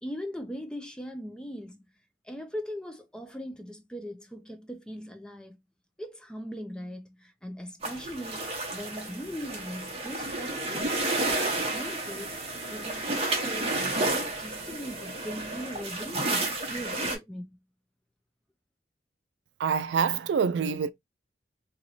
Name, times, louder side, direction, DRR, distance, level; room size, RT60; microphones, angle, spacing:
voice 1, 0.0-1.8 2.3-5.6 6.0-10.9 11.2-12.4 12.7-17.6, equal, 5° left, 0.5 m, -40 dB
sound 1, 7.8-17.2, right 2 dB, 30° right, 1.0 m, -31 dB
voice 2, 19.6-20.9, right 6 dB, 80° right, 0.3 m, -26 dB
3.1 x 3.0 x 2.6 m
head